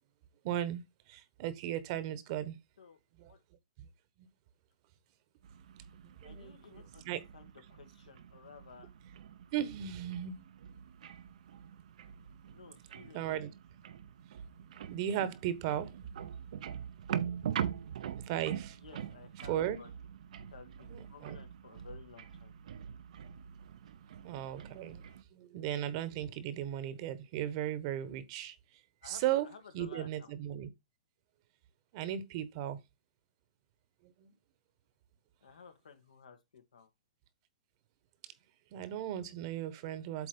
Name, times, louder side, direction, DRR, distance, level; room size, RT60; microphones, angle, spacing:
voice 1, 0.4-0.8 1.1-2.6 3.2-3.3 3.8-3.9 6.2-6.5 7.1-7.2 9.5-10.4 13.1-13.5 14.9-15.9 17.6-17.7 18.3-18.8 19.5-19.8 20.9-21.4 24.2-25.0 25.3-28.6 29.0-29.5 29.7-30.7 31.9-32.8 34.0-34.3 38.7-40.3, right 11 dB, 45° right, 1.1 m, -36 dB
sound 1, 5.4-25.2, right 9 dB, 70° right, 0.7 m, -43 dB
voice 2, 6.2-8.9 12.4-13.5 18.7-19.9 20.5-22.5 29.0-30.3 35.4-36.9, left 5 dB, 85° left, 1.7 m, -55 dB
8.1 x 3.1 x 5.3 m
hypercardioid pair, 135°, 4 cm